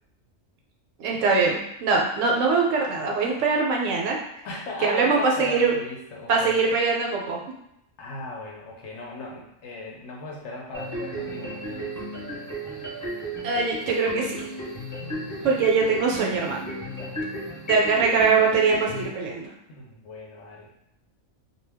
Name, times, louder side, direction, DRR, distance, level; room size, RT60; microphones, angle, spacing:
voice 1, 1.0-4.2 4.8-5.7 6.3-7.4 13.4-14.4 15.4-16.7 17.7-19.5, right 4 dB, 75° right, -1 dB, 0.9 m, -22 dB
voice 2, 4.4-6.6 8.0-11.9 15.0-15.5 16.8-17.4 19.7-20.7, left 2 dB, 65° left, -2 dB, 0.8 m, -38 dB
sound 1, 10.7-19.0, right 1 dB, 20° left, 0.7 m, -34 dB
2.2 x 2.2 x 3.3 m, 0.82 s
omnidirectional pair, 1.4 m